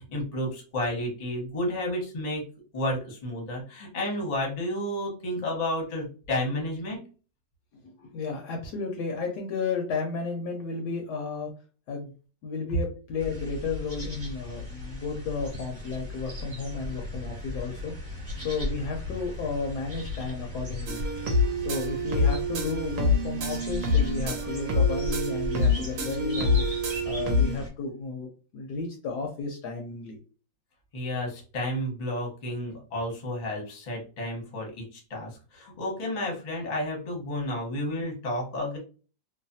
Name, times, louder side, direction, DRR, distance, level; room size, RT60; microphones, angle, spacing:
voice 1, 0.1-2.4 2.7-7.0 30.9-38.8, left 1 dB, 30° left, -1 dB, 0.7 m, -31 dB
voice 2, 7.8-11.5 11.9-12.1 12.4-21.0 21.6-26.6 27.1-30.2, left 4 dB, 70° left, 2 dB, 1.1 m, -33 dB
sound 1, 13.2-27.7, left 1 dB, 30° right, 1.3 m, -37 dB
sound 2, 20.9-27.6, left 2 dB, 65° right, 1.1 m, -26 dB
3.1 x 2.1 x 2.6 m, 0.37 s
omnidirectional pair, 2.0 m